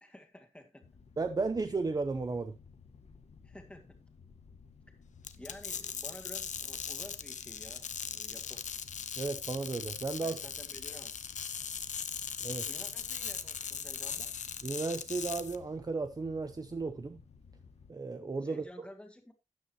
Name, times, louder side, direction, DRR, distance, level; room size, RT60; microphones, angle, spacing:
voice 1, 0.0-1.0 3.4-4.0 5.4-8.7 10.2-11.1 12.6-14.3 18.4-19.3, left 1 dB, 10° left, 2.2 m, -51 dB
sound 1, 0.8-17.9, left 5 dB, 55° left, 1.4 m, -57 dB
voice 2, 1.2-2.6 9.2-10.4 12.4-12.7 14.6-17.2 17.9-18.6, right 3 dB, 30° right, 0.7 m, -34 dB
sound 2, 5.2-15.5, left 7 dB, 75° left, 0.8 m, -39 dB
12.5 x 9.3 x 3.0 m
wide cardioid pair, 140°, 13 cm